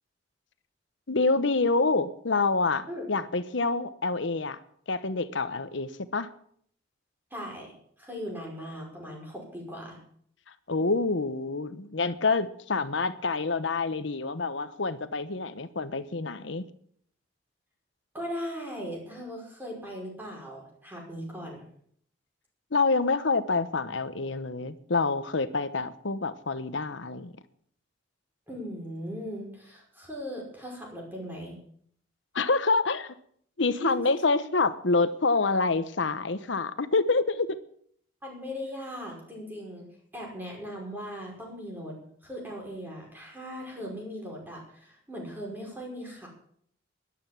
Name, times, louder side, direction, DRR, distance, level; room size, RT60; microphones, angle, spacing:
voice 1, 1.1-4.6 4.9-6.3 10.7-16.7 22.7-27.3 32.3-33.1 33.6-37.6, left 3 dB, 70° left, 1.0 m, -27 dB
voice 2, 7.3-10.0 18.1-21.6 28.5-31.6 33.6-33.9 38.2-39.9 40.1-42.0 42.2-46.3, equal, 10° right, 5.3 m, -39 dB
12.5 x 11.5 x 7.5 m
head